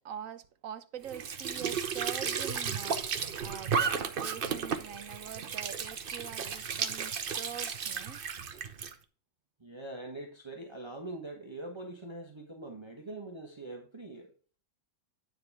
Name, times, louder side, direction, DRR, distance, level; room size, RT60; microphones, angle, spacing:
voice 1, 0.0-8.2, right 9 dB, 90° right, 1.2 m, -44 dB
Squeak / Sink (filling or washing) / Trickle dribble, 1.0-8.9, right 6 dB, 50° right, 0.9 m, -34 dB
voice 2, 9.6-14.3, right 2 dB, 25° right, 1.1 m, -43 dB
9.7 x 4.1 x 4.7 m
omnidirectional pair, 1.3 m